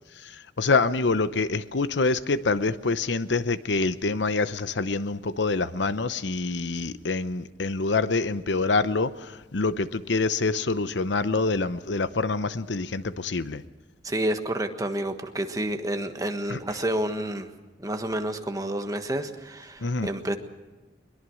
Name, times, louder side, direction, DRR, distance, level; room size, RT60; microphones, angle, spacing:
voice 1, 0.6-13.6 16.5-16.6 19.8-20.1, left 3 dB, 70° left, 14 dB, 0.8 m, -26 dB
voice 2, 14.0-17.5 17.8-20.4, right 1 dB, 20° right, 6 dB, 1.4 m, -29 dB
22.0 x 22.0 x 6.4 m, 1.2 s
head